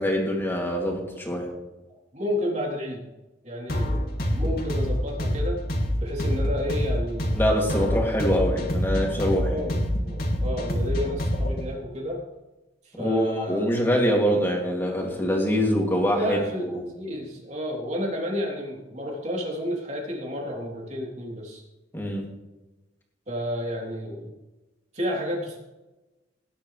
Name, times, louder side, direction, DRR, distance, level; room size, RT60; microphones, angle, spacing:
voice 1, 0.0-1.5 7.3-9.6 13.0-16.7 21.9-22.2, equal, 10° left, -1 dB, 2.7 m, -24 dB
voice 2, 2.1-3.0 3.4-4.0 4.3-5.6 6.0-7.7 9.4-9.7 10.0-12.2 12.9-13.6 16.1-21.6 23.3-24.3 24.9-25.6, left 1 dB, 40° right, -2 dB, 3.4 m, -31 dB
sound 1, 3.7-11.6, equal, 55° left, 2.3 m, -26 dB
18.5 x 10.5 x 3.4 m, 1.0 s
head